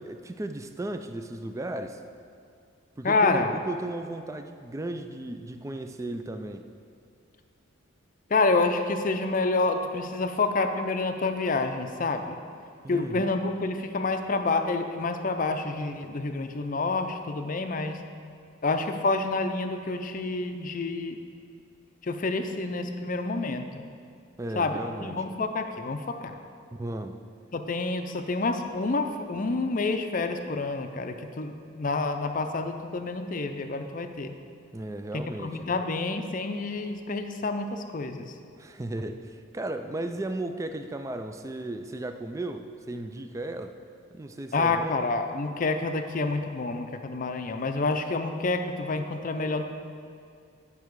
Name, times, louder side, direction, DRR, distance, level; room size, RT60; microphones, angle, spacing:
voice 1, 0.0-2.0 3.0-6.7 12.8-13.3 24.4-25.2 26.7-27.2 34.7-35.8 38.6-43.7 44.1-45.0, right 2 dB, 15° right, 7 dB, 0.3 m, -35 dB
voice 2, 3.0-3.5 8.3-12.4 12.9-18.0 18.6-21.2 22.0-23.8 24.5-26.3 27.5-34.3 35.1-38.3 44.5-49.6, left 3 dB, 40° left, 7 dB, 0.5 m, -28 dB
10.5 x 5.6 x 4.7 m, 2.4 s
head